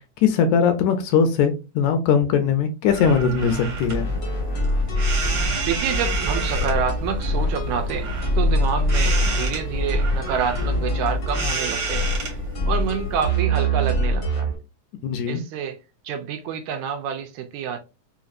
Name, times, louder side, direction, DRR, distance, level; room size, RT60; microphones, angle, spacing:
voice 1, 0.2-4.1 15.0-15.4, left 6 dB, 80° left, 1.9 m, -20 dB
sound 1, 2.9-13.4, right 3 dB, 55° right, 2.0 m, -31 dB
sound 2, 3.9-14.5, equal, 50° left, 0.9 m, -24 dB
sound 3, 5.1-10.9, right 1 dB, 10° left, 0.9 m, -34 dB
voice 2, 5.3-12.1 12.7-14.6 15.3-17.8, right 7 dB, 80° right, 1.9 m, -28 dB
5.1 x 2.7 x 2.4 m
omnidirectional pair, 3.5 m